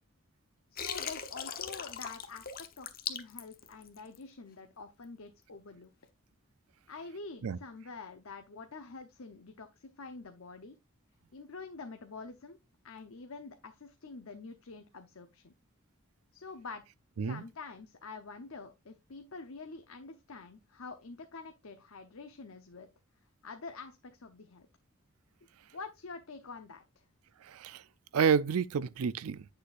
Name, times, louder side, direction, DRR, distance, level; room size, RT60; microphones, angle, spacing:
voice 1, 0.7-5.9 6.9-10.8 11.3-12.6 12.8-15.5 16.3-16.8 17.2-22.9 23.4-24.7 25.7-27.0, left 4 dB, 75° left, 0.8 m, -47 dB
Water, 0.8-4.2, left 8 dB, 40° left, 0.9 m, -39 dB
voice 2, 27.4-27.8 28.1-29.5, right 6 dB, 85° right, 0.4 m, -29 dB
9.6 x 6.7 x 2.5 m
head